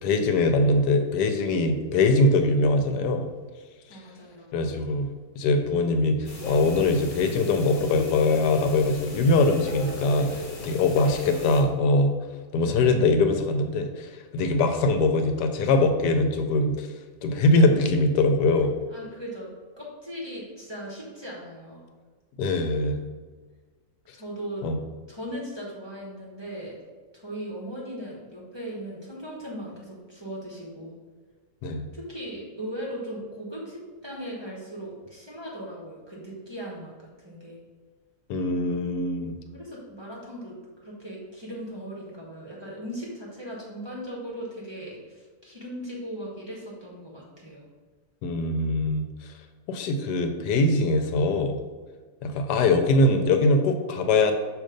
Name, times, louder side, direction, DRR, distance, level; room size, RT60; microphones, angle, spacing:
voice 1, 0.0-3.3 4.5-5.1 5.4-12.1 12.5-16.9 17.2-18.7 22.4-23.0 24.6-24.8 31.6-31.9 38.3-39.3 48.2-49.0 49.7-51.6 52.2-54.3, left 2 dB, 85° left, 6 dB, 1.2 m, -22 dB
voice 2, 3.9-4.6 18.9-19.5 19.8-21.8 24.1-24.6 25.1-26.8 27.1-30.9 31.9-37.6 39.5-40.5 40.8-47.6, equal, 20° right, -5 dB, 1.1 m, -38 dB
sound 1, 6.2-11.6, left 1 dB, 50° left, 1.2 m, -37 dB
6.3 x 2.9 x 5.1 m, 1.4 s
omnidirectional pair, 1.7 m